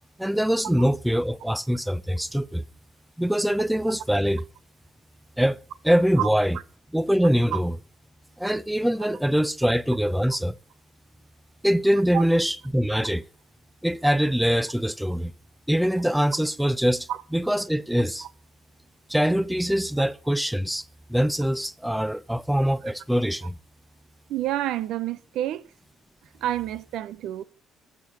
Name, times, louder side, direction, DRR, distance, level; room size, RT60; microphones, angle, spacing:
voice 1, 0.2-2.6 3.2-4.4 5.4-6.6 6.9-7.8 8.4-10.6 11.6-13.3 13.8-15.3 15.7-18.3 19.1-20.8 21.1-23.5, equal, 5° right, 0.7 m, -23 dB
voice 2, 24.3-25.6 26.4-27.4, right 13 dB, 75° right, 0.8 m, -28 dB
14.0 x 6.9 x 8.6 m
supercardioid pair, 65°, 0 cm